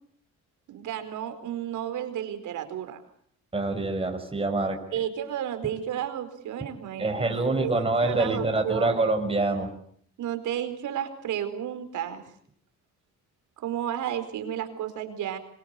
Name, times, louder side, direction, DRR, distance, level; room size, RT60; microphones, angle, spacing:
voice 1, 0.7-3.0 4.9-9.1 10.2-12.2 13.6-15.4, right 10 dB, 80° right, 9 dB, 4.6 m, -32 dB
voice 2, 3.5-4.8 7.0-9.7, right 2 dB, 20° right, 4 dB, 6.0 m, -25 dB
25.5 x 24.0 x 8.4 m, 0.64 s
cardioid pair, 90°, 30 cm